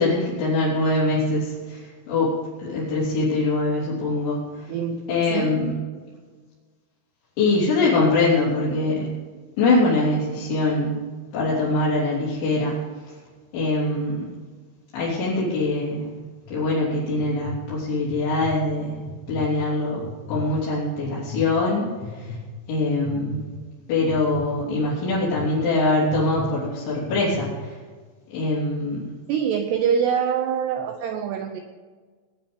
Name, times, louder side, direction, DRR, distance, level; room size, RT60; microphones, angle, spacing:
voice 1, 0.0-4.7 5.1-5.7 7.4-9.1 9.6-11.1 11.3-12.8 13.5-14.3 14.9-16.1 16.5-20.0 20.3-22.3 22.7-23.5 23.9-27.8 28.3-29.1, left 2 dB, 70° left, -9 dB, 5.8 m, -23 dB
voice 2, 4.7-5.0 5.3-5.5 29.3-31.6, right 7 dB, 75° right, 6 dB, 2.5 m, -24 dB
sound 1, 16.2-16.5 17.1-17.6 18.1-18.5 19.0-19.5 20.0-20.5 21.0-21.4 22.0-22.4 23.0-23.4 24.1-24.4 25.1-25.5 26.1-26.5 27.0-27.5, left 5 dB, 50° left, 1.4 m, -35 dB
20.5 x 10.5 x 5.3 m, 1.5 s
omnidirectional pair, 5.6 m